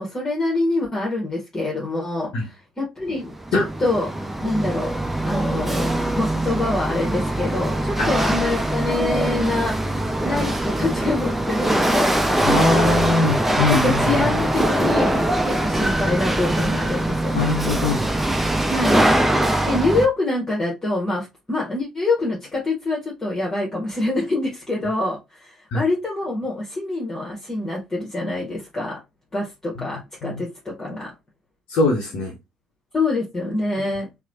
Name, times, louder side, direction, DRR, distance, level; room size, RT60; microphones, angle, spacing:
voice 1, 0.0-4.1 4.4-4.9 5.2-5.9 6.2-9.8 10.2-12.9 13.7-17.5 18.7-19.1 19.7-29.0 29.3-31.1 32.9-34.1, left 2 dB, 25° left, 1.0 m, -25 dB
Chatter / Hiss / Rattle, 3.2-20.1, right 1 dB, 10° right, 0.5 m, -22 dB
voice 2, 12.4-13.9 17.3-18.0 25.7-25.8 30.2-30.4 31.7-32.3, left 2 dB, 60° left, 0.7 m, -21 dB
3.1 x 2.0 x 2.5 m
figure-of-eight pair, 50°, 2 cm